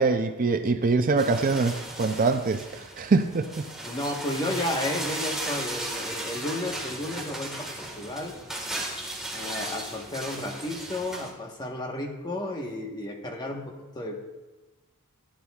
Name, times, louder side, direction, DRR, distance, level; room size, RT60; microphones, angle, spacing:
voice 1, 0.0-3.5, right 4 dB, 40° right, 8 dB, 0.4 m, -24 dB
sound 1, 1.2-11.3, right 1 dB, ahead, 1.6 m, -36 dB
voice 2, 3.8-8.4 9.3-14.2, left 1 dB, 20° left, 1 dB, 1.2 m, -32 dB
15.5 x 10.0 x 2.4 m, 1.1 s
head